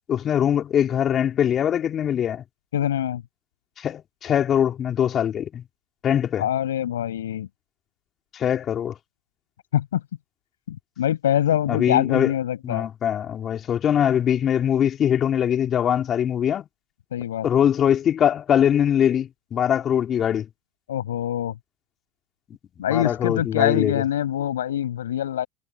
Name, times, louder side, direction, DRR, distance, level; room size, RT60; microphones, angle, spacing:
voice 1, 0.1-2.4 3.8-5.6 6.0-6.5 8.3-8.9 11.7-12.3 12.6-16.6 17.4-20.5 22.9-24.0, left 9 dB, 40° left, 3.3 m, -22 dB
voice 2, 2.7-3.2 6.4-7.5 9.7-10.0 10.7-12.9 17.1-17.5 20.9-21.6 22.8-25.5, left 11 dB, 85° left, 6.0 m, -24 dB
hypercardioid pair, 80°, 0 cm